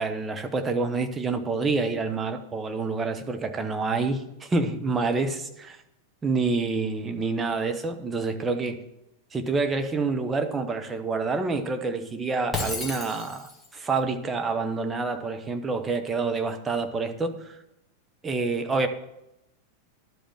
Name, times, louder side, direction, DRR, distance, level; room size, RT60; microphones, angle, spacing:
voice 1, 0.0-5.8 6.2-8.8 9.3-17.6 18.2-18.9, right 3 dB, 15° right, 6 dB, 1.0 m, -27 dB
Shatter, 12.5-13.7, left 2 dB, ahead, 2.0 m, -32 dB
11.5 x 5.1 x 7.3 m, 0.88 s
figure-of-eight pair, 90°, 0 cm